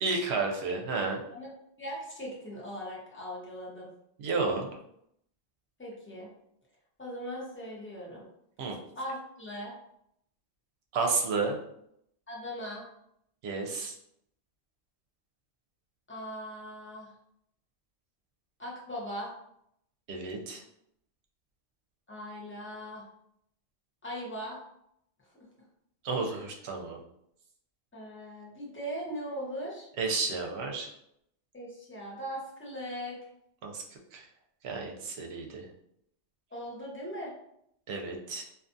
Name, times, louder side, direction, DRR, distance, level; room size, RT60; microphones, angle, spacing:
voice 1, 0.0-1.2 4.2-4.7 8.6-8.8 10.9-11.6 13.4-14.0 20.1-20.6 26.0-27.0 30.0-30.9 33.6-33.8 34.1-34.3 34.6-35.7 37.9-38.4, right 4 dB, 75° right, 1 dB, 0.8 m, -31 dB
voice 2, 1.8-3.9 5.8-6.3 7.0-8.3 9.0-9.7 12.3-12.8 16.1-17.1 18.6-19.3 22.1-23.0 24.0-24.6 26.3-26.4 27.9-29.9 31.5-33.2 36.5-37.3, equal, 15° left, -5 dB, 0.6 m, -39 dB
2.5 x 2.3 x 2.5 m, 0.74 s
omnidirectional pair, 1.1 m